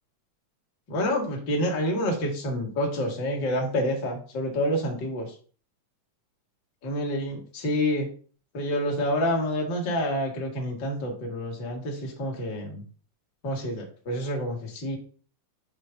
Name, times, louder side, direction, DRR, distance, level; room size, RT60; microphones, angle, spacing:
voice 1, 0.9-5.3 6.8-8.1 8.5-12.8 13.4-15.0, equal, 45° left, 0 dB, 1.7 m, -28 dB
5.3 x 3.3 x 5.6 m, 0.41 s
omnidirectional pair, 3.5 m